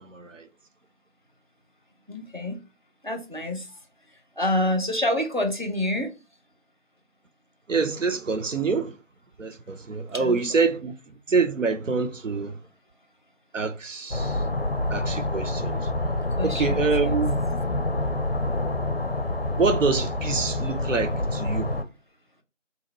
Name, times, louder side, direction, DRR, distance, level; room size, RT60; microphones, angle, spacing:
voice 1, 0.1-0.5 7.7-8.9 9.4-10.9 11.3-12.5 13.5-14.4 14.9-15.9 16.4-17.3 19.6-21.7, right 4 dB, 85° right, 0.7 m, -26 dB
voice 2, 2.1-2.6 3.0-3.7 4.4-6.1 10.1-10.6 16.4-17.2, left 1 dB, 40° right, 0.5 m, -27 dB
sound 1, 14.1-21.8, left 2 dB, 55° left, 0.4 m, -27 dB
2.8 x 2.3 x 4.0 m
figure-of-eight pair, 175°, 37 cm